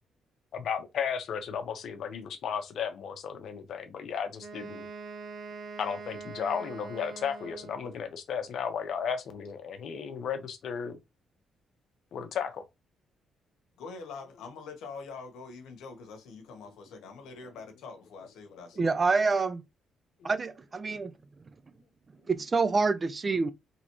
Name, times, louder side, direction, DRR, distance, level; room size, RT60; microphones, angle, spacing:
voice 1, 0.5-4.9 5.8-11.0 12.1-12.6 16.7-16.8 17.4-17.6 18.7-18.9 20.2-20.6, left 7 dB, 65° left, 1.0 m, -34 dB
Wind instrument woodwind instrument, 4.4-8.1, right 4 dB, 60° right, 1.0 m, -43 dB
voice 2, 13.8-18.8, left 4 dB, 85° left, 1.3 m, -44 dB
voice 3, 18.8-19.6 20.2-21.1 22.3-23.5, right 4 dB, 35° right, 0.5 m, -27 dB
4.0 x 3.5 x 3.1 m
cardioid pair, 90°, 0 cm